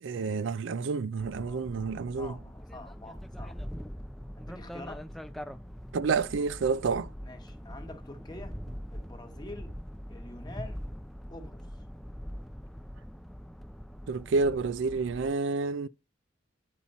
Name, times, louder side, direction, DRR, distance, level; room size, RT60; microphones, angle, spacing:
voice 1, 0.0-2.3 5.9-7.1 14.1-15.9, right 4 dB, 75° right, 0.4 m, -29 dB
sound 1, 1.2-15.3, equal, ahead, 0.3 m, -42 dB
voice 2, 1.3-1.7 2.2-3.6 4.4-5.1 7.2-8.6 8.9-9.7 10.1-10.9 11.3-11.6, left 2 dB, 25° left, 1.2 m, -46 dB
8.9 x 4.2 x 4.2 m
head